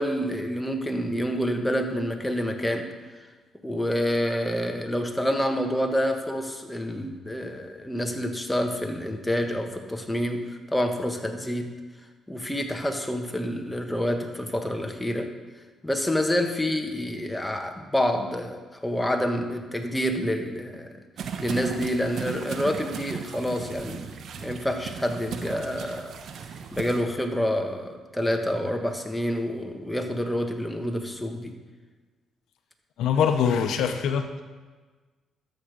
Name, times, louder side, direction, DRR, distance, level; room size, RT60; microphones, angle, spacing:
voice 1, 0.0-2.9 3.6-11.7 12.3-15.3 15.8-21.0 21.4-24.1 24.4-26.1 26.7-31.5, equal, 10° left, 4 dB, 1.3 m, -28 dB
sound 1, 21.2-27.0, right 7 dB, 65° right, 0.9 m, -37 dB
voice 2, 33.0-34.4, left 7 dB, 80° left, 7 dB, 0.7 m, -23 dB
13.0 x 6.5 x 5.1 m, 1.4 s
cardioid pair, 90°, 0 cm